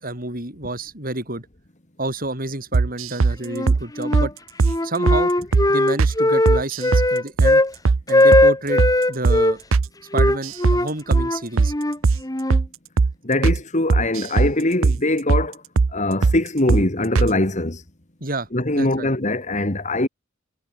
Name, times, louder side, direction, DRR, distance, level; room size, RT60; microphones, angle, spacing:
voice 1, 0.0-1.5 2.0-4.3 4.8-5.3 5.7-7.6 8.1-9.6 10.1-11.7 18.2-18.5 18.7-19.1, right 2 dB, 45° right, 6.8 m, -29 dB
sound 1, 2.7-3.4 3.7-3.8 4.1-4.3 4.6-4.8 5.1-5.2 5.5-5.7 6.0-6.1 6.5-7.1 7.4-7.5 7.8-8.0 8.3-8.5 8.8-8.9 9.2-9.4 9.7-9.9 10.2-10.8 11.1-11.3 11.6-11.7 12.0-12.2 12.5-12.7 13.0-13.1 13.4-13.6 13.9-14.5 14.8-15.0 15.3-15.5 15.8-15.9 16.2-16.4 16.7-16.8 17.1-17.3, right 4 dB, 75° right, 0.6 m, -18 dB
Wind instrument woodwind instrument, 3.5-4.3 4.6-7.7 8.1-9.6 10.1-12.6, left 1 dB, 20° left, 1.6 m, -19 dB
voice 2, 13.2-15.6 15.9-17.8 18.5-20.1, left 2 dB, 35° left, 2.3 m, -22 dB
head